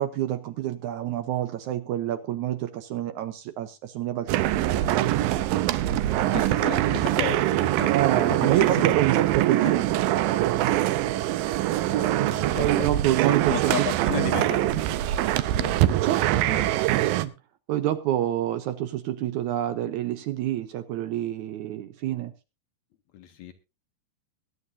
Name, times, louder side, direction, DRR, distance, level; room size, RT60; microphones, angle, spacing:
voice 1, 0.0-5.2 7.9-10.4 12.6-13.9 15.9-17.3 17.7-22.3, right 12 dB, 75° right, 10 dB, 1.9 m, -28 dB
sound 1, 4.3-17.2, right 14 dB, 90° right, 2.5 m, -23 dB
sound 2, 6.1-9.4, right 5 dB, 35° right, 2.5 m, -48 dB
voice 2, 6.2-9.2 9.6-9.7 11.7-14.7 15.0-15.8 16.2-16.8 23.1-23.5, left 10 dB, 70° left, 8 dB, 1.9 m, -35 dB
22.0 x 9.5 x 2.6 m, 0.28 s
omnidirectional pair, 3.9 m